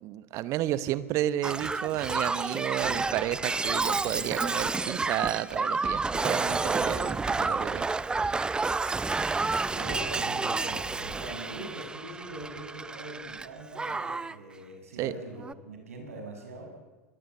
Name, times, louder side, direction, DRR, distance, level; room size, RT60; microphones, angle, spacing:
voice 1, 0.0-7.9 15.0-15.1, right 13 dB, 40° right, 17 dB, 1.0 m, -31 dB
Shatter, 1.4-13.5 13.7-14.3 15.4-15.5, right 3 dB, 10° right, 0.7 m, -30 dB
voice 2, 9.6-16.7, right 1 dB, 70° right, 3 dB, 6.4 m, -42 dB
23.5 x 19.5 x 8.4 m, 1.3 s
figure-of-eight pair, 85°, 8 cm